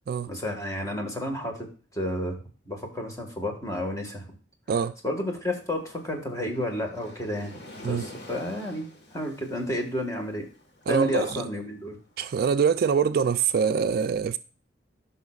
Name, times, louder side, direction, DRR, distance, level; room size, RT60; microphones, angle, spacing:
voice 1, 0.3-1.6 1.9-2.4 2.6-4.3 5.0-7.6 7.8-8.9 9.1-10.5 10.9-11.9, left 1 dB, 15° left, 1.6 m, -31 dB
Waves surf, 5.4-12.5, left 1 dB, 60° left, 1.5 m, -48 dB
voice 2, 10.9-11.5 12.2-14.4, right 6 dB, 55° right, 0.3 m, -24 dB
13.5 x 5.6 x 2.4 m
head